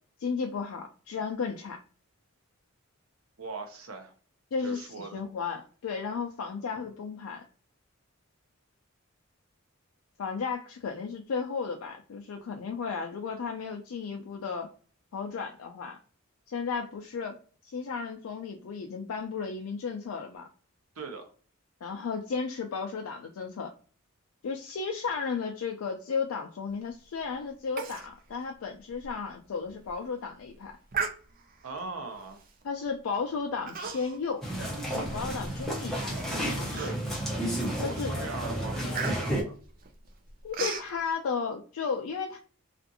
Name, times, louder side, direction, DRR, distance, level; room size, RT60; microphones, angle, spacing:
voice 1, 0.2-1.8 4.5-7.4 10.2-14.7 15.1-16.0 16.5-17.4 17.6-20.5 21.8-23.7 24.4-30.7 32.6-34.5 35.0-36.9 37.8-38.1 40.4-42.4, left 5 dB, 85° left, 2 dB, 0.4 m, -34 dB
voice 2, 3.4-4.1 4.6-5.2 21.0-21.2 31.6-32.4 36.7-37.0 37.5-39.6, right 4 dB, 80° right, 5 dB, 0.7 m, -40 dB
Human voice, 27.8-28.1 28.4-28.5 29.0-29.1 29.7-29.9 30.9-31.6 32.4-32.6 33.7-34.3 34.6-35.7 36.2-36.3 36.7-37.3 37.8-38.0 38.3-40.9, right 5 dB, 40° right, 0.4 m, -36 dB
sound 1, 34.4-39.4, right 1 dB, ahead, 0.6 m, -32 dB
2.5 x 2.5 x 2.5 m, 0.41 s
head